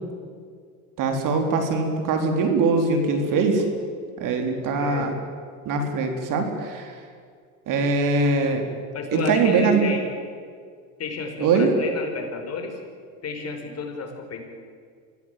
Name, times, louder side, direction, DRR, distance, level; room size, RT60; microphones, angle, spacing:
voice 1, 1.0-3.6 4.2-5.1 5.7-6.9 7.7-8.6 9.1-9.9 11.4-11.7, right 4 dB, 50° right, 5 dB, 4.1 m, -22 dB
voice 2, 4.8-5.1 8.9-10.1 11.0-12.8 13.2-14.4, left 4 dB, 35° left, 3 dB, 5.3 m, -31 dB
24.5 x 16.5 x 9.3 m, 2.1 s
hypercardioid pair, 95°, 42 cm